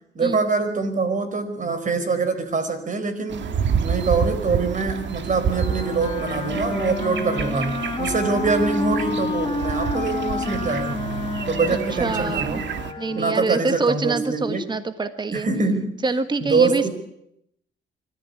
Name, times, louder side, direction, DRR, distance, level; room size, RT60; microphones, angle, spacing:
voice 1, 0.1-3.5 3.8-11.0 11.5-12.6 13.1-14.6 15.3-16.0 16.4-16.9, right 4 dB, 40° right, 9 dB, 4.6 m, -24 dB
sound 1, 3.3-12.9, right 7 dB, 65° right, 1.8 m, -29 dB
Wind instrument woodwind instrument, 5.4-13.5, left 3 dB, 25° left, 2.4 m, -29 dB
voice 2, 12.0-12.6 13.0-15.5 16.0-16.9, right 3 dB, 20° right, 10 dB, 1.5 m, -25 dB
24.5 x 14.0 x 9.9 m, 0.79 s
cardioid pair, 90°, 20 cm